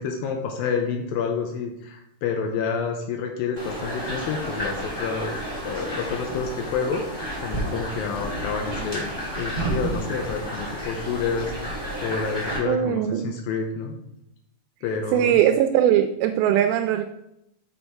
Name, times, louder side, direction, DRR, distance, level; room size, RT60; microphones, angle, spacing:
voice 1, 0.0-5.4 5.6-11.5 12.0-14.0 14.8-15.4, left 5 dB, 85° left, 2 dB, 2.5 m, -29 dB
sound 1, 3.6-12.6, right 1 dB, 10° left, 2.3 m, -31 dB
voice 2, 12.7-13.3 15.1-17.0, right 10 dB, 90° right, 6 dB, 2.4 m, -20 dB
6.6 x 5.4 x 4.5 m, 0.81 s
omnidirectional pair, 4.2 m